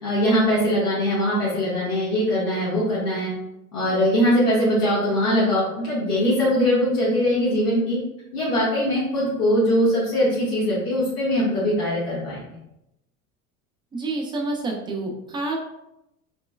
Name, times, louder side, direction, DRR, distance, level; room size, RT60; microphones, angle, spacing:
voice 1, 0.0-3.3 3.7-8.0 8.3-12.5, equal, 80° left, -8 dB, 1.0 m, -21 dB
voice 2, 13.9-15.6, right 2 dB, 10° right, -1 dB, 0.3 m, -28 dB
3.1 x 2.1 x 2.3 m, 0.87 s
hypercardioid pair, 75°, 45 cm